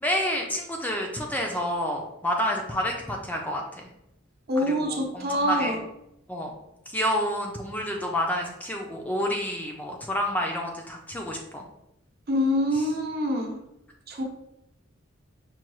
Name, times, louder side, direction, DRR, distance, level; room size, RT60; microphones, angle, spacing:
voice 1, 0.0-3.8 4.7-5.8 6.3-6.5 6.9-11.6 12.7-12.9, equal, 10° left, 0 dB, 0.4 m, -29 dB
voice 2, 4.5-5.8 7.0-7.1 12.3-13.6 14.1-14.2, equal, 50° right, 1 dB, 0.8 m, -25 dB
5.6 x 2.3 x 3.0 m, 0.84 s
head